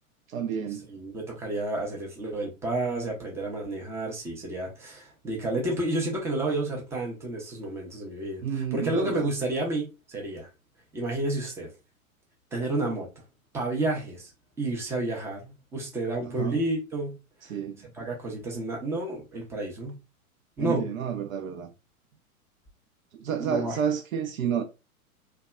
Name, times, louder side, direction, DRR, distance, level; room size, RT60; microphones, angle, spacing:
voice 1, 0.3-0.9 8.4-9.3 16.2-16.6 17.5-17.8 20.6-21.7 23.2-24.6, right 8 dB, 70° right, 0.6 m, -30 dB
voice 2, 0.9-8.4 8.7-10.5 10.9-11.7 12.5-13.1 13.5-14.3 14.6-17.2 17.8-20.0 20.6-20.8 23.4-23.7, right 2 dB, 5° right, 0.4 m, -30 dB
2.7 x 2.2 x 2.2 m
hypercardioid pair, 110°, 43 cm